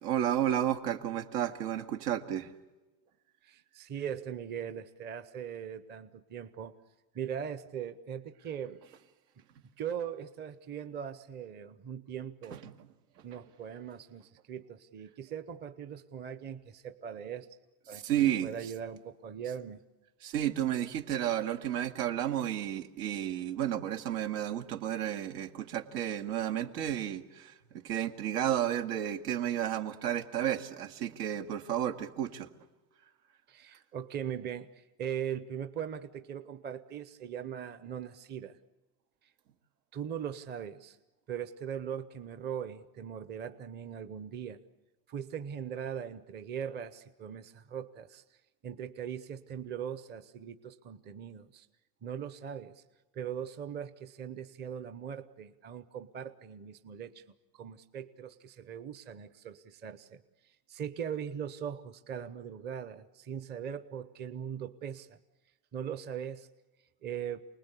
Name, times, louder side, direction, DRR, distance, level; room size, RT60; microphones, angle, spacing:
voice 1, 0.0-2.5 12.5-12.7 17.9-18.5 20.2-32.5, right 11 dB, 75° right, 2.3 m, -32 dB
voice 2, 3.4-6.7 7.1-8.8 9.8-12.6 13.2-17.5 17.9-19.8 33.5-38.6 39.9-41.0 41.3-44.6 45.1-48.2 48.6-51.7 52.0-52.8 53.1-57.2 57.5-60.2 60.7-65.2 65.7-66.5 67.0-67.5, right 8 dB, 20° right, 0.8 m, -40 dB
29.0 x 20.0 x 8.3 m
supercardioid pair, 145°, 48 cm